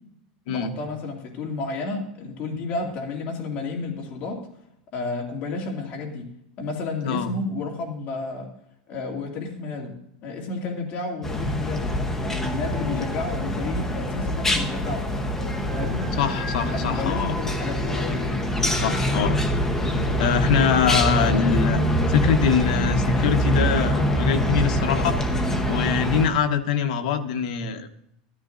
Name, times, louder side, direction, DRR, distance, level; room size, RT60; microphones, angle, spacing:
voice 1, 0.5-4.4 4.9-6.3 6.6-8.5 8.9-10.0 10.2-15.1 15.7-16.1 16.6-18.2 21.0-21.6, left 3 dB, 35° left, 0 dB, 2.4 m, -31 dB
sound 1, 11.2-26.3, equal, 10° left, 0.9 m, -24 dB
voice 2, 16.2-17.4 18.8-19.4 20.2-21.8 22.1-25.2 25.5-27.9, left 7 dB, 70° left, 6 dB, 1.2 m, -24 dB
13.5 x 13.5 x 2.6 m, 0.74 s
supercardioid pair, 160°, 4 cm